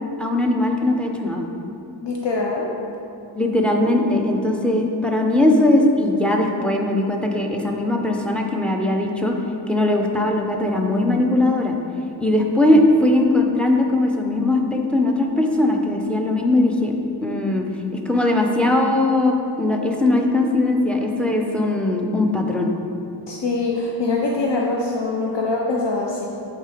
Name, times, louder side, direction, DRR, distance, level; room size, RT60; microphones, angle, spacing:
voice 1, 0.2-1.5 3.3-9.4 9.7-11.8 12.2-16.9 17.2-17.7 17.9-22.7, left 2 dB, ahead, 1 dB, 0.7 m, -19 dB
voice 2, 2.0-2.7 23.3-26.3, left 3 dB, 65° left, -2 dB, 0.7 m, -23 dB
8.7 x 3.8 x 5.0 m, 2.7 s
wide cardioid pair, 95°, 45 cm